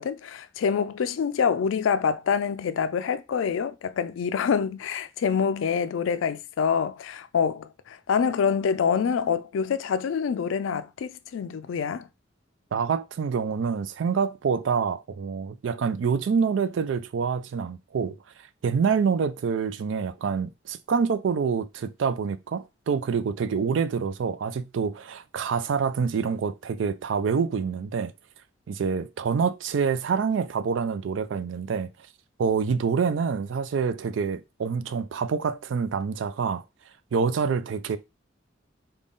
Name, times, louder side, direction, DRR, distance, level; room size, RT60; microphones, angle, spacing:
voice 1, 0.0-12.1, left 6 dB, 85° left, 0.3 m, -26 dB
voice 2, 12.7-18.2 18.6-28.1 28.7-31.9 32.4-36.6 37.1-38.0, right 6 dB, 75° right, 0.4 m, -26 dB
3.8 x 2.3 x 3.5 m
head